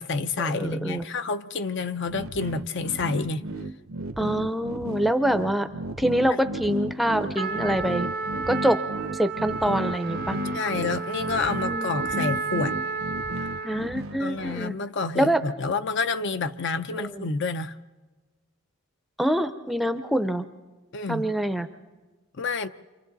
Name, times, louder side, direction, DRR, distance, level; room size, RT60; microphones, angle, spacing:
voice 1, 0.0-3.4 6.3-6.4 10.5-12.7 13.4-13.5 14.2-17.7 20.9-21.2 22.4-22.7, left 4 dB, 55° left, 10 dB, 0.6 m, -29 dB
voice 2, 0.5-1.0 4.2-5.7 6.0-8.1 8.5-8.8 9.1-10.4 11.6-11.9 13.6-14.8 15.2-15.4 17.0-17.3 19.2-20.5 21.1-21.7, right 1 dB, ahead, 9 dB, 0.6 m, -25 dB
sound 1, 2.1-14.6, right 1 dB, 75° right, 0.8 m, -34 dB
Trumpet, 7.3-13.9, right 4 dB, 45° right, 0.6 m, -32 dB
29.0 x 25.5 x 4.0 m, 1.3 s
head